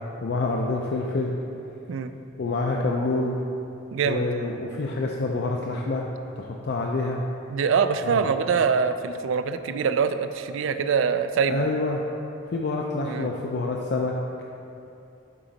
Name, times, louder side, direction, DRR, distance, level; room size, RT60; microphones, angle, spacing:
voice 1, 0.2-1.3 2.4-3.4 4.0-7.2 8.0-8.3 11.5-12.0 12.5-14.2, left 3 dB, 55° left, -1 dB, 0.4 m, -27 dB
voice 2, 3.9-4.3 7.5-11.6 13.1-13.3, right 6 dB, 75° right, 10 dB, 0.3 m, -24 dB
7.5 x 4.9 x 4.0 m, 2.8 s
head